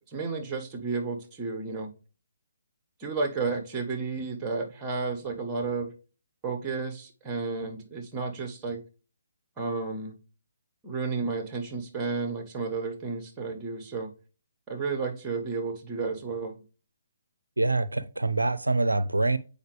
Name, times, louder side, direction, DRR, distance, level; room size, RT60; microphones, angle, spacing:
voice 1, 0.1-1.9 3.0-5.9 6.4-8.8 9.6-10.1 10.8-14.1 14.7-16.6, right 4 dB, 20° right, 1.5 m, -32 dB
voice 2, 17.6-19.4, right 2 dB, 90° right, 0.5 m, -25 dB
7.9 x 5.0 x 3.3 m
figure-of-eight pair, 140°, 0 cm